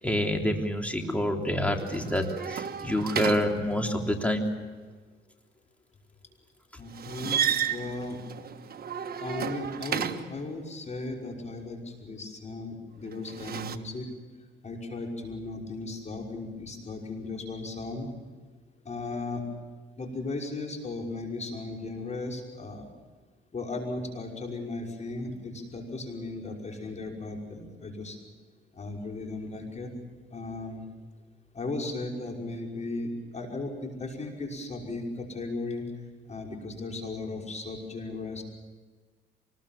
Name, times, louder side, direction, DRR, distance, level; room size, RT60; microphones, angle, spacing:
voice 1, 0.0-4.5, left 1 dB, 5° left, 2 dB, 3.5 m, -27 dB
sound 1, 1.7-4.1 6.9-10.5 13.1-13.8, right 8 dB, 50° right, 1.5 m, -33 dB
voice 2, 6.8-8.2 9.2-14.1 14.6-18.1 18.8-19.4 20.0-22.9 23.5-28.2 28.7-29.9 30.3-30.8 31.5-35.8 36.3-38.4, left 2 dB, 35° left, 1 dB, 5.8 m, -36 dB
25.0 x 20.5 x 7.4 m, 1.4 s
cardioid pair, 90°, 20 cm